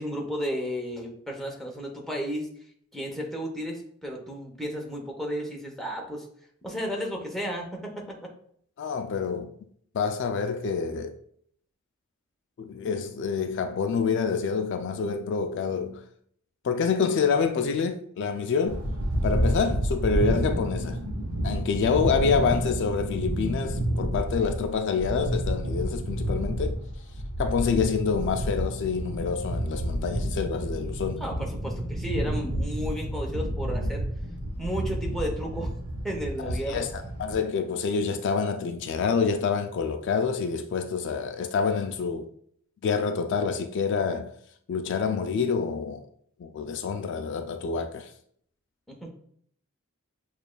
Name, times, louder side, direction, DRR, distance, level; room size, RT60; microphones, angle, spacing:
voice 1, 0.0-2.5 2.9-6.3 6.6-8.0 31.2-34.0 34.6-35.7 36.0-36.9 48.9-49.1, equal, ahead, 0.7 m, -33 dB
voice 2, 8.8-9.5 9.9-11.2 12.6-16.0 16.6-18.8 19.2-21.0 21.4-26.8 27.4-31.2 36.4-42.3 42.8-44.3 44.7-46.0 46.4-48.1, left 5 dB, 55° left, 0.3 m, -27 dB
sound 1, 18.7-37.4, right 1 dB, 85° right, 0.8 m, -30 dB
6.8 x 2.4 x 2.2 m
head